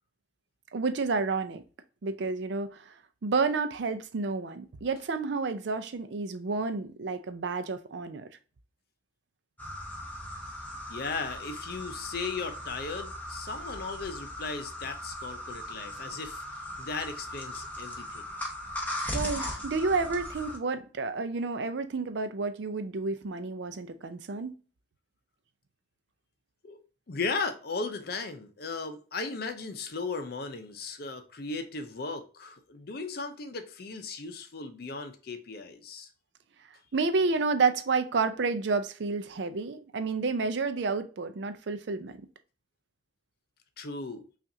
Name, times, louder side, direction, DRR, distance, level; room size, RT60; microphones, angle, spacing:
voice 1, 0.7-1.6 2.0-2.9 3.2-8.3 19.1-24.5 36.9-42.2, right 4 dB, 70° right, 0.5 m, -30 dB
sound 1, 9.6-20.6, left 1 dB, 10° left, 0.8 m, -38 dB
voice 2, 10.9-18.3 26.6-36.1 43.8-44.3, left 4 dB, 55° left, 0.6 m, -36 dB
5.6 x 2.5 x 2.7 m
head